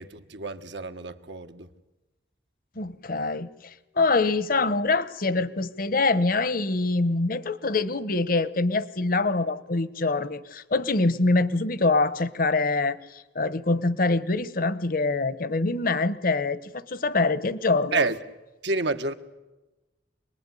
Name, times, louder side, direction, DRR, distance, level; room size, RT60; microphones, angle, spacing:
voice 1, 0.0-1.7 17.9-18.2 18.6-19.1, right 3 dB, 75° right, 1.6 m, -29 dB
voice 2, 2.8-18.1, left 3 dB, 50° left, 1.1 m, -25 dB
27.0 x 20.5 x 10.0 m
head